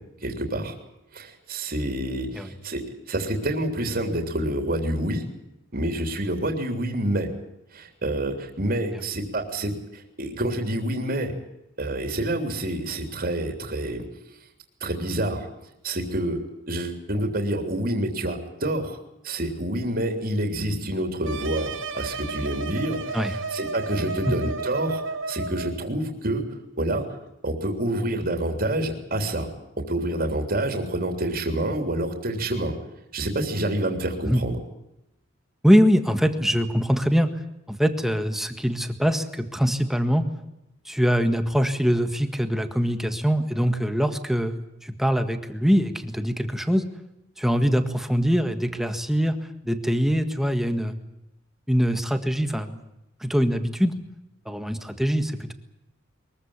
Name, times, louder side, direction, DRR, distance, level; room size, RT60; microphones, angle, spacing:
voice 1, 0.2-0.7 1.1-2.8 3.1-5.2 5.7-7.3 7.7-11.3 11.8-14.0 14.8-15.5 15.8-19.0 19.2-25.0 25.3-26.4 26.8-27.0 27.4-29.5 29.9-32.7 33.1-34.6, right 1 dB, 50° right, 4 dB, 3.4 m, -27 dB
sound 1, 21.2-25.7, right 4 dB, 85° right, 2.3 m, -32 dB
voice 2, 35.6-37.3 37.7-40.3 40.8-46.8 47.4-49.4 49.6-51.0 51.7-52.8 53.2-53.9 54.4-55.5, equal, ahead, 8 dB, 1.7 m, -23 dB
23.0 x 15.0 x 9.9 m, 0.88 s
head